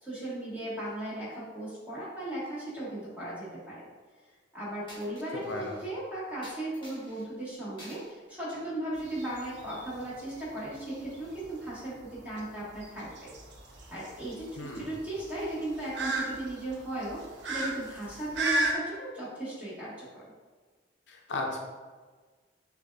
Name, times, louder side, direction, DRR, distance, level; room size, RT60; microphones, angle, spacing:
voice 1, 0.0-3.8 4.5-13.1 13.9-20.2, right 1 dB, 10° right, -9 dB, 1.3 m, -37 dB
Coin (dropping), 4.9-5.9 6.4-7.2 7.8-8.1 8.5-9.6, left 1 dB, 25° left, 1.3 m, -51 dB
voice 2, 5.3-5.7 14.6-14.9 21.1-21.6, left 2 dB, 75° left, 1 dB, 0.5 m, -35 dB
sound 1, 9.0-18.7, right 2 dB, 75° right, 0.6 m, -36 dB
6.3 x 2.3 x 2.3 m, 1.4 s
head